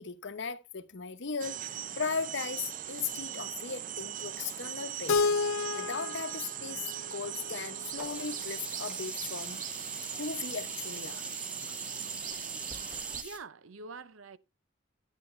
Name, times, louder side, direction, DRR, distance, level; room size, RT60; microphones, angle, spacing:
voice 1, 0.0-5.3 5.7-6.8 7.1-9.6 10.2-11.3, left 5 dB, 60° left, 0.8 m, -37 dB
sound 1, 1.4-13.2, right 10 dB, 40° right, 0.5 m, -39 dB
Keyboard (musical), 5.1-8.0, left 4 dB, 85° left, 0.5 m, -31 dB
Sink (filling or washing), 8.0-13.4, equal, 5° right, 1.3 m, -43 dB
voice 2, 13.1-14.4, right 4 dB, 90° right, 0.6 m, -45 dB
9.6 x 9.6 x 3.1 m
head